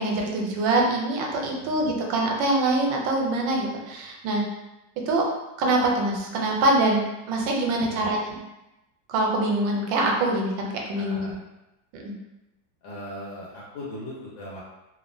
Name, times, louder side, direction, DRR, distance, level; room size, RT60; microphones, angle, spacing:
voice 1, 0.0-4.4 5.1-5.3 5.6-8.4 9.1-11.3 11.9-12.1, right 2 dB, 80° right, 0 dB, 1.3 m, -24 dB
voice 2, 1.5-1.8 7.8-8.1 10.9-11.4 12.8-14.6, left 1 dB, 85° left, -7 dB, 1.5 m, -39 dB
3.3 x 2.1 x 2.5 m, 0.96 s
omnidirectional pair, 2.0 m